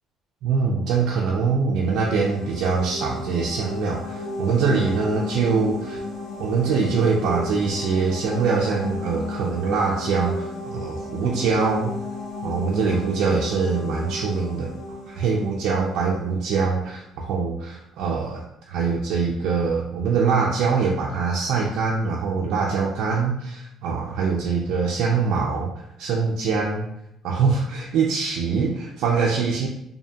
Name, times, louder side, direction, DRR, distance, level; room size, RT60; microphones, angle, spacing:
voice 1, 0.4-6.0 6.4-12.0 12.4-25.7 26.0-26.9 27.2-29.7, right 5 dB, 70° right, -2 dB, 0.3 m, -23 dB
sound 1, 1.7-16.4, left 2 dB, 65° left, 0.8 m, -34 dB
2.7 x 2.5 x 2.2 m, 0.79 s
cardioid pair, 155°, 0 cm